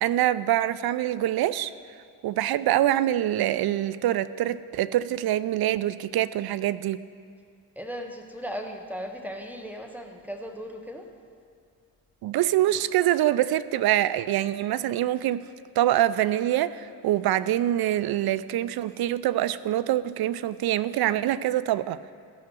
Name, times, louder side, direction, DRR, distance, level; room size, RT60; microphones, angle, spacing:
voice 1, 0.0-1.7 2.2-7.0 12.2-15.4 15.8-22.0, right 13 dB, 50° right, 16 dB, 0.5 m, -25 dB
voice 2, 7.7-11.0, equal, 5° right, 3 dB, 1.6 m, -37 dB
14.5 x 5.8 x 6.3 m, 2.2 s
hypercardioid pair, 40°, 49 cm